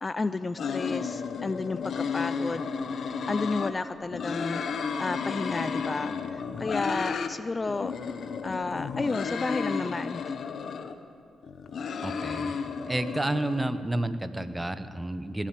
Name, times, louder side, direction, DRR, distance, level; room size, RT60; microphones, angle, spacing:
voice 1, 0.0-2.6 3.3-4.6 5.0-7.9 8.4-10.3, left 3 dB, 30° left, 14 dB, 0.4 m, -32 dB
sound 1, 0.6-3.7 4.1-7.3 7.6-10.9 11.4-13.6, left 5 dB, 65° left, 0.9 m, -33 dB
voice 2, 12.0-12.5 12.9-15.5, right 1 dB, 15° right, 11 dB, 0.9 m, -30 dB
18.5 x 7.4 x 9.2 m, 2.6 s
cardioid pair, 70°, 0 cm